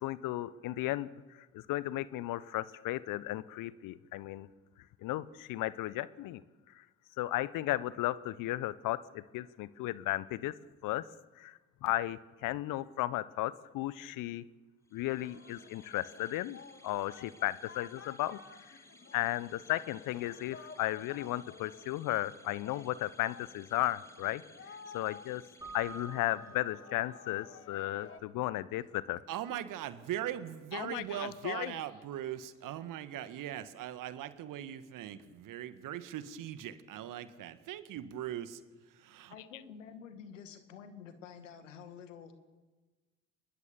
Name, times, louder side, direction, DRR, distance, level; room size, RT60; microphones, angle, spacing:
voice 1, 0.0-4.5 5.0-6.8 7.2-11.1 11.4-14.4 14.9-18.8 19.1-24.4 24.9-25.4 25.7-29.2 30.7-31.8, left 16 dB, 60° left, 18 dB, 0.9 m, -35 dB
sound 1, 14.9-26.7, left 1 dB, 5° left, 2.6 m, -60 dB
Singing, 15.1-28.2, left 5 dB, 35° left, 2.5 m, -53 dB
Keyboard (musical), 25.6-27.4, right 4 dB, 10° right, 5.8 m, -49 dB
voice 2, 29.3-38.6 39.0-39.3, right 11 dB, 55° right, 12 dB, 1.7 m, -40 dB
voice 3, 39.3-42.3, left 7 dB, 80° left, 9 dB, 2.0 m, -49 dB
26.0 x 21.0 x 7.0 m, 1.3 s
figure-of-eight pair, 50°, 37 cm